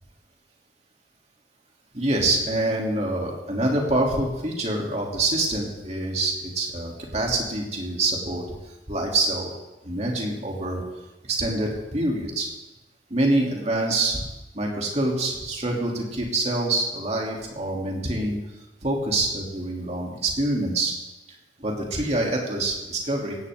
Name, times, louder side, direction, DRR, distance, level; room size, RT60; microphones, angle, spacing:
voice 1, 1.9-8.4 8.9-9.6 9.8-10.8 11.3-12.5 13.1-14.2 14.5-18.4 18.8-20.9 21.6-23.4, right 2 dB, 35° right, -1 dB, 3.2 m, -25 dB
17.5 x 16.0 x 3.8 m, 1.0 s
head